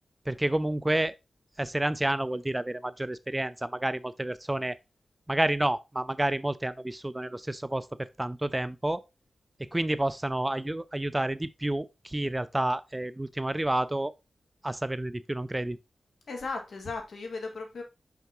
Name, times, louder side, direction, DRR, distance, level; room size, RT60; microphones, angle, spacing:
voice 1, 0.3-1.1 1.6-4.8 5.3-9.0 9.6-14.1 14.6-15.8, right 1 dB, 15° right, 0.3 m, -29 dB
voice 2, 16.3-17.8, left 3 dB, 75° left, 2.0 m, -36 dB
5.7 x 5.7 x 2.9 m
wide cardioid pair, 90°, 0 cm